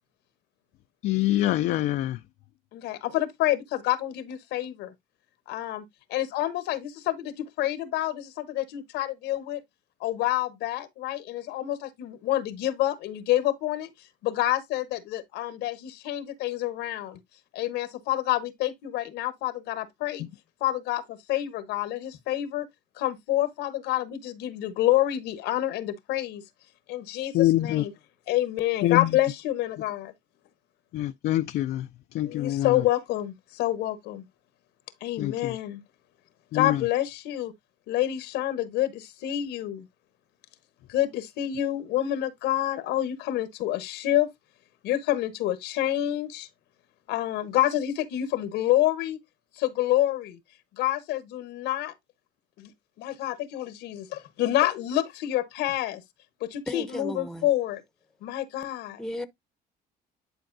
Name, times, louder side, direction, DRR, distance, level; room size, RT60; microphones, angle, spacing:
voice 1, 1.0-2.2 20.2-20.3 27.3-27.8 28.8-29.2 30.9-32.9 35.2-35.6 36.5-36.8, left 14 dB, 65° left, 0.4 m, -25 dB
voice 2, 2.7-4.9 5.5-5.8 6.1-9.6 10.0-13.9 14.2-17.2 17.5-20.2 20.6-22.7 23.0-26.4 26.9-27.3 27.6-27.9 28.3-30.1 32.2-34.2 35.0-35.8 36.5-37.5 37.9-39.8 40.9-44.3 44.8-46.5 47.1-49.2 49.6-50.4 50.8-51.9 52.6-52.7 53.0-56.0 56.4-57.8 58.2-59.0, left 14 dB, 90° left, 1.1 m, -28 dB
voice 3, 56.7-57.5 59.0-59.3, left 1 dB, 5° left, 0.8 m, -35 dB
10.5 x 4.4 x 2.6 m
cardioid pair, 110°, 17 cm